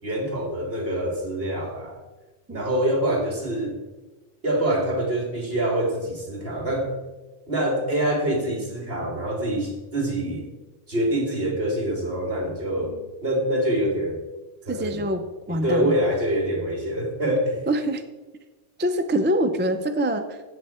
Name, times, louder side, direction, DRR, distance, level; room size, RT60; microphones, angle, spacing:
voice 1, 0.0-2.0 2.5-3.8 4.4-7.0 7.5-10.5 10.9-14.2 14.6-15.1 15.5-17.6, right 1 dB, 50° right, 1 dB, 2.6 m, -25 dB
voice 2, 14.7-16.0 17.7-18.0 18.8-20.4, right 1 dB, 15° right, 7 dB, 0.3 m, -25 dB
16.0 x 6.6 x 4.4 m, 1.2 s
omnidirectional pair, 1.3 m